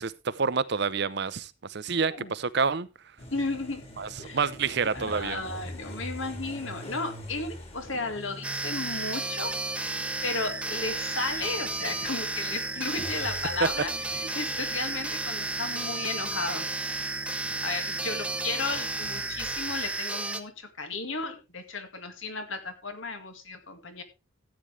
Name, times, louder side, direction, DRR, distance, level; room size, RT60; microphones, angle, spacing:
voice 1, 0.0-2.9 4.0-5.4, right 5 dB, 60° right, 0.7 m, -28 dB
sound 1, 3.2-20.0, equal, 30° left, 2.7 m, -44 dB
voice 2, 3.3-3.8 4.2-4.5 4.9-9.6 10.2-17.0 17.6-24.0, left 3 dB, 75° left, 2.1 m, -34 dB
sound 2, 8.4-20.4, right 3 dB, 5° right, 0.8 m, -33 dB
14.0 x 8.8 x 3.3 m
head